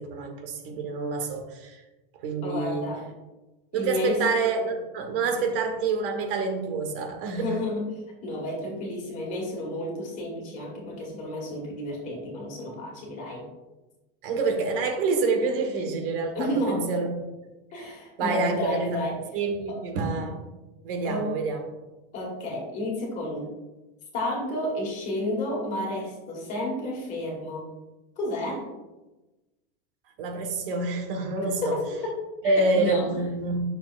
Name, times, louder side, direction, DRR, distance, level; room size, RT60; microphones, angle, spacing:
voice 1, 0.0-1.8 2.2-2.8 3.7-7.5 14.2-17.1 17.7-17.9 18.2-19.0 19.3-20.4 20.8-21.6 30.2-31.8 32.4-33.6, right 3 dB, 65° right, 3 dB, 1.5 m, -27 dB
voice 2, 2.4-3.1 3.7-4.2 5.4-5.5 7.3-7.9 8.2-13.5 16.3-16.8 17.7-19.2 19.7-19.8 21.0-21.3 22.1-23.5 24.1-27.7 28.2-28.7 31.4-32.1 32.4-33.1, left 1 dB, 25° left, 0 dB, 1.7 m, -31 dB
9.9 x 6.6 x 2.5 m, 1.1 s
supercardioid pair, 180°, 30 cm